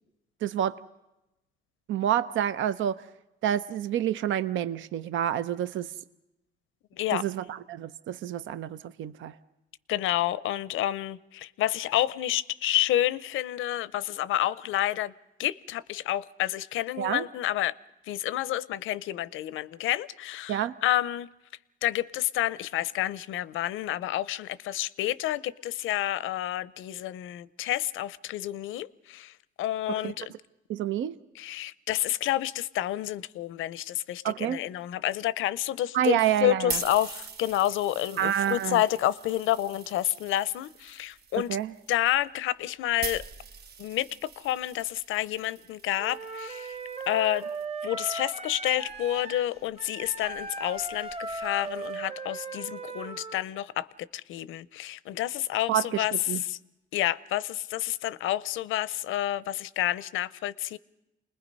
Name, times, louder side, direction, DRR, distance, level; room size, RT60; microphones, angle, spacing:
voice 1, 0.4-0.8 1.9-3.1 3.4-5.9 7.1-9.4 17.0-17.2 20.5-20.8 29.9-30.1 30.7-31.2 34.2-34.6 35.9-36.8 38.2-38.8 41.5-41.7 55.7-56.4, right 11 dB, 75° right, 0.7 m, -28 dB
voice 2, 9.9-15.1 15.4-17.7 18.1-21.3 21.8-30.2 31.4-41.6 41.9-43.2 43.8-46.8 47.1-47.5 47.8-53.9 54.1-56.1 56.5-56.6 56.9-60.8, left 13 dB, 85° left, 0.7 m, -29 dB
sound 1, 36.3-47.7 48.4-52.0, right 6 dB, 55° right, 1.0 m, -44 dB
Wind instrument woodwind instrument, 46.0-53.5, right 3 dB, 30° right, 1.4 m, -37 dB
29.0 x 20.5 x 5.4 m
cardioid pair, 90°, 20 cm